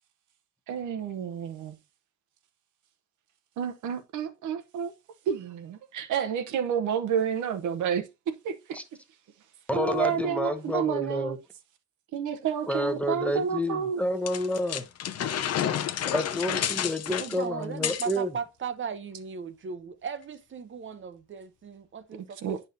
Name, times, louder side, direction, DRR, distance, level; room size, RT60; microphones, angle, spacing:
voice 1, 0.7-1.8 3.6-4.9 5.3-8.8 9.7-11.4 12.1-14.0 22.4-22.6, right 8 dB, 80° right, 1.0 m, -30 dB
voice 2, 9.7-11.4 12.7-14.8 16.1-18.3, left 1 dB, 5° left, 0.9 m, -29 dB
sound 1, 14.3-18.2, left 10 dB, 55° left, 0.7 m, -30 dB
voice 3, 17.2-22.6, right 6 dB, 40° right, 0.8 m, -37 dB
8.9 x 5.4 x 2.7 m
cardioid pair, 90°, 30 cm